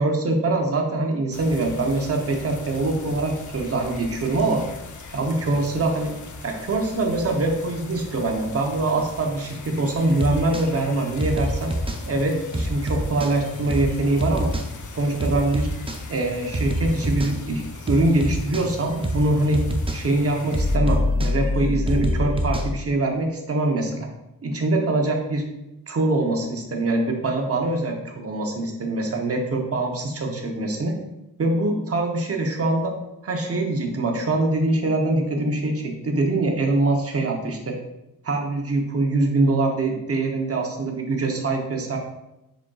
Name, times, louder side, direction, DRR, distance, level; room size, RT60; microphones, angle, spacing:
voice 1, 0.0-4.6 5.1-6.1 6.4-11.7 12.1-14.5 14.9-15.7 16.1-17.6 17.9-19.6 19.9-24.1 24.4-25.4 25.9-31.0 31.4-32.9 33.2-37.8 38.2-42.0, right 2 dB, 40° right, 2 dB, 0.8 m, -23 dB
sound 1, 1.3-20.8, left 3 dB, 55° left, 0.6 m, -39 dB
sound 2, 10.2-10.7 11.2-12.0 12.5-13.3 13.7-13.9 14.2-14.7 15.2-16.0 16.5-17.3 17.9-18.7 19.0-19.3 19.5-20.0 20.5-22.7, equal, 15° right, 0.4 m, -25 dB
5.0 x 4.3 x 2.3 m, 0.91 s
wide cardioid pair, 95°, 38 cm